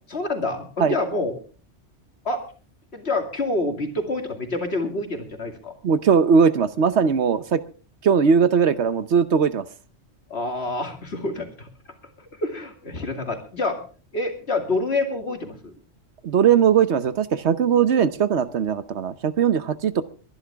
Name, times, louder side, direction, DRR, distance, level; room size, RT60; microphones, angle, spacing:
voice 1, 0.1-1.4 2.2-2.4 2.9-5.7 10.3-11.7 12.2-13.9 14.1-15.7, left 2 dB, 60° left, 4 dB, 2.7 m, -27 dB
voice 2, 5.8-7.6 8.0-9.7 16.2-20.0, right 7 dB, 65° right, 13 dB, 1.2 m, -19 dB
22.0 x 11.5 x 3.5 m, 0.38 s
omnidirectional pair, 1.2 m